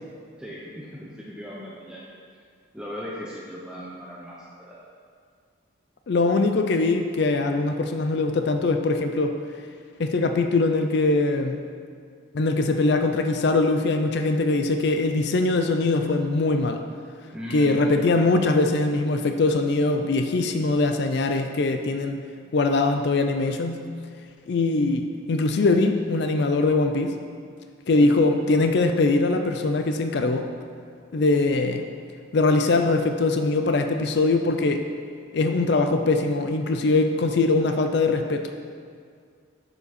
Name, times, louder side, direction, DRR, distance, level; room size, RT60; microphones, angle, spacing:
voice 1, 0.4-2.0 2.7-4.8 17.3-17.9 28.0-28.1, equal, 5° right, -6 dB, 0.7 m, -37 dB
voice 2, 6.1-9.3 10.0-11.6 12.3-16.8 17.5-22.2 22.5-23.8 24.5-27.1 27.9-30.5 31.1-31.8 32.3-34.8 35.3-38.4, left 3 dB, 55° left, 6 dB, 0.4 m, -22 dB
7.2 x 6.7 x 4.1 m, 2.2 s
head